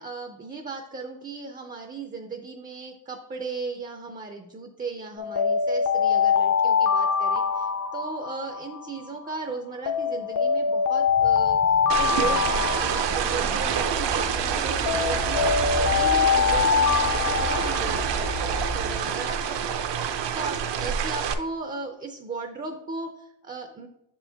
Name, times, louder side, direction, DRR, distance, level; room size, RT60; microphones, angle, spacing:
voice 1, 0.0-19.4 19.8-19.9 20.3-23.9, right 4 dB, 20° right, 4 dB, 0.4 m, -36 dB
Alarm, 5.2-9.3 9.9-14.3 14.9-18.7, left 6 dB, 45° left, 0.4 m, -24 dB
sound 1, 11.1-19.0, right 1 dB, 85° right, 1.4 m, -35 dB
sound 2, 11.9-21.3, right 8 dB, 70° right, 0.6 m, -27 dB
6.8 x 4.5 x 3.3 m, 0.84 s
wide cardioid pair, 135°, 45 cm